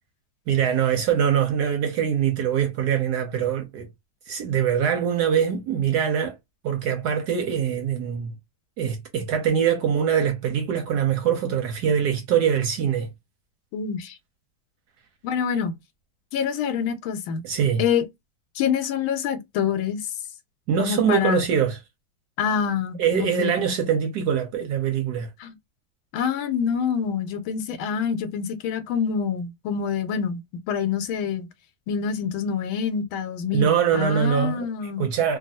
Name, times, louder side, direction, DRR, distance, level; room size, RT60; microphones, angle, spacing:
voice 1, 0.5-3.9 4.3-6.4 6.6-8.3 8.8-13.1 17.4-17.8 20.7-21.8 23.0-25.3 33.5-34.7 35.0-35.4, right 8 dB, 70° right, 1.0 m, -23 dB
voice 2, 13.7-14.1 15.2-15.8 16.3-17.4 17.8-18.0 18.6-20.0 20.8-21.5 22.4-23.5 25.4-25.5 26.1-31.5 31.9-35.1, left 7 dB, 85° left, 1.4 m, -26 dB
3.2 x 2.3 x 2.6 m
omnidirectional pair, 2.2 m